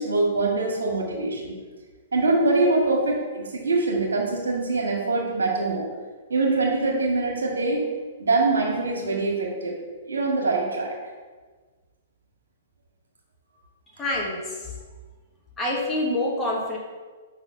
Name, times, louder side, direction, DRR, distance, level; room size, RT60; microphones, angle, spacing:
voice 1, 0.0-1.6 2.1-5.9 6.3-7.9 8.2-9.8 10.1-10.9, right 3 dB, 75° right, -2 dB, 2.0 m, -23 dB
voice 2, 14.0-14.8 15.6-16.8, left 1 dB, 15° left, -4 dB, 1.6 m, -27 dB
5.5 x 4.1 x 5.7 m, 1.4 s
figure-of-eight pair, 115°, 0 cm